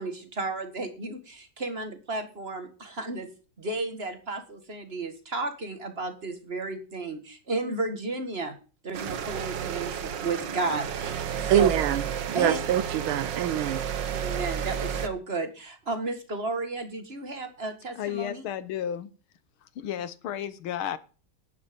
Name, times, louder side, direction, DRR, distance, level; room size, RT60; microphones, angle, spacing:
voice 1, 0.0-3.3 3.6-8.6 8.8-11.7 12.3-12.6 14.1-18.4, right 3 dB, 30° right, 1.9 m, -33 dB
sound 1, 8.9-15.1, right 8 dB, 65° right, 1.7 m, -32 dB
voice 2, 11.5-13.8, right 11 dB, 85° right, 1.7 m, -25 dB
voice 3, 18.0-19.1 19.6-21.0, left 10 dB, 85° left, 1.9 m, -33 dB
11.5 x 9.8 x 5.3 m
omnidirectional pair, 2.3 m